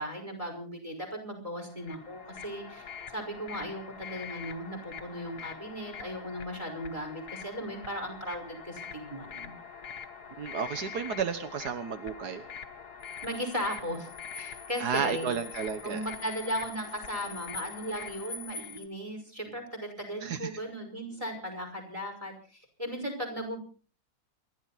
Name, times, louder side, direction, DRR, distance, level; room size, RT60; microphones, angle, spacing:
voice 1, 0.0-9.5 13.2-14.1 14.3-15.3 15.8-23.6, equal, 20° right, 5 dB, 5.5 m, -37 dB
sound 1, 1.7-18.8, left 6 dB, 75° left, 1.7 m, -45 dB
voice 2, 10.4-12.4 14.8-16.0 20.2-20.5, right 6 dB, 85° right, 9 dB, 1.8 m, -32 dB
sound 2, 13.0-18.9, left 5 dB, 60° left, 1.5 m, -46 dB
29.0 x 12.0 x 4.2 m, 0.40 s
omnidirectional pair, 1.7 m